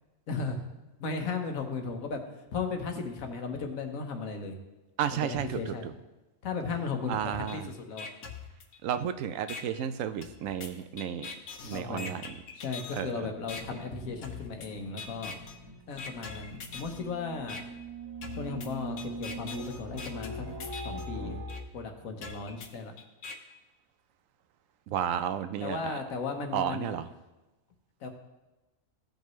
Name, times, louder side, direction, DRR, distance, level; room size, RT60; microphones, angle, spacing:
voice 1, 0.3-0.7 1.0-2.2 2.5-4.6 5.1-5.9 6.4-8.1 11.7-12.2 12.6-15.3 15.9-17.6 18.3-20.5 20.8-21.5 21.7-22.9 25.6-26.9 28.0-28.1, left 4 dB, 85° left, 4 dB, 1.4 m, -36 dB
voice 2, 5.0-5.7 7.1-7.7 8.8-11.3 11.6-12.3 12.9-13.3 24.9-26.0 26.5-27.1, right 9 dB, 80° right, 11 dB, 0.9 m, -32 dB
sound 1, 7.5-7.6 8.0-9.0 9.5-9.6 10.2-13.0 13.5-13.6 14.2-14.7 15.0-15.5 16.0-17.0 17.5-17.6 18.2-21.0 21.5-21.6 22.2-23.3, left 5 dB, 65° left, 1.2 m, -42 dB
sound 2, 13.5-21.6, right 1 dB, 20° right, 1.1 m, -42 dB
15.0 x 5.3 x 3.1 m, 1.1 s
omnidirectional pair, 1.4 m